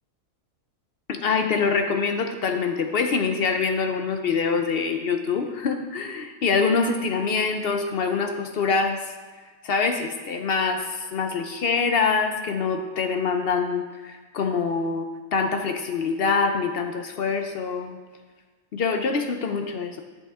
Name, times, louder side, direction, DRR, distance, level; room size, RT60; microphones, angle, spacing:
voice 1, 1.1-9.1 9.6-18.0 18.7-20.0, left 5 dB, 55° left, 6 dB, 0.7 m, -25 dB
8.5 x 8.4 x 3.5 m, 1.4 s
omnidirectional pair, 1.4 m